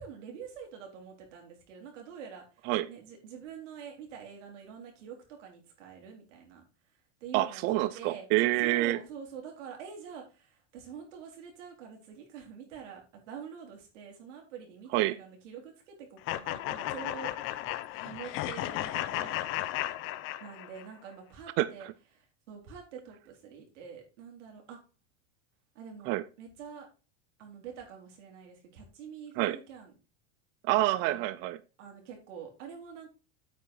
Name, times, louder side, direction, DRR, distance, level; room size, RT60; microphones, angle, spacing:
voice 1, 0.0-6.6 7.2-8.3 8.6-19.4 20.4-21.9 22.1-24.8 25.7-26.9 27.4-29.9 31.0-31.2 31.8-33.1, right 7 dB, 85° right, 1 dB, 4.1 m, -46 dB
voice 2, 7.3-9.0 14.9-15.1 21.6-21.7 26.1-26.2 29.4-29.6 30.6-31.6, right 17 dB, 35° right, 15 dB, 0.4 m, -27 dB
sound 1, 16.3-20.9, left 14 dB, 35° left, 0.6 m, -34 dB
8.6 x 6.2 x 4.6 m, 0.32 s
supercardioid pair, 155°, 36 cm